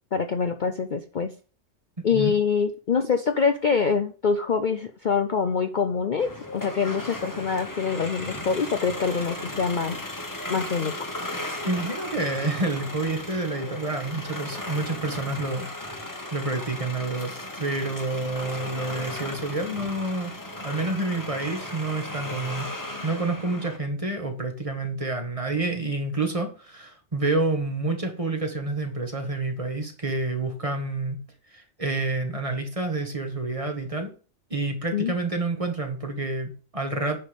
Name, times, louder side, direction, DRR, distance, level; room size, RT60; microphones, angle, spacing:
voice 1, 0.1-1.3 2.0-10.0 10.5-10.9 34.9-35.1, left 6 dB, 45° left, 8 dB, 0.7 m, -25 dB
sound 1, 6.2-23.8, left 1 dB, 15° left, 1.3 m, -36 dB
voice 2, 11.6-17.3 17.6-20.3 20.6-22.7 23.0-31.2 31.5-34.1 34.5-37.2, right 2 dB, 25° right, 4 dB, 1.7 m, -28 dB
9.5 x 5.6 x 5.3 m, 0.38 s
omnidirectional pair, 1.3 m